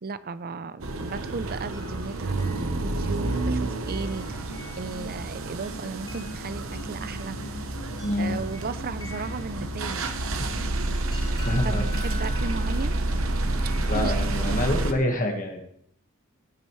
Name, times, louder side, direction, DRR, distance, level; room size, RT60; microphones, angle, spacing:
voice 1, 0.0-7.4 8.2-10.1 10.6-10.7 11.5-13.0 13.6-14.2 14.5-14.6, right 4 dB, 45° right, 15 dB, 0.6 m, -35 dB
sound 1, 0.8-14.9, right 2 dB, 70° right, 1.0 m, -29 dB
sound 2, 1.7-14.3, left 2 dB, 20° left, 2.1 m, -48 dB
sound 3, 3.2-14.3, equal, 60° left, 1.6 m, -42 dB
voice 2, 8.0-8.4 10.4-10.5 11.4-11.8 13.8-15.6, left 1 dB, 40° left, 2 dB, 1.6 m, -26 dB
17.0 x 9.0 x 3.2 m, 0.68 s
head